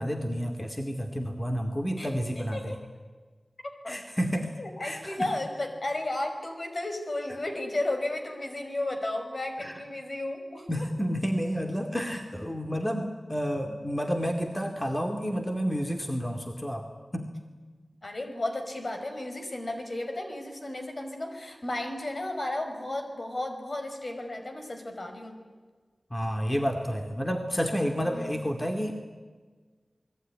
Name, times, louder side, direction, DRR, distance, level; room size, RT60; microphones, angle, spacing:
voice 1, 0.0-2.8 3.9-5.3 9.6-9.8 10.7-16.9 17.1-17.3 26.1-28.9, equal, 15° left, 4 dB, 2.5 m, -30 dB
voice 2, 2.0-2.8 3.6-4.0 4.6-10.9 18.0-25.4 28.1-28.4, left 1 dB, 55° left, 5 dB, 5.3 m, -34 dB
28.5 x 21.0 x 9.9 m, 1.4 s
wide cardioid pair, 70°, 0 cm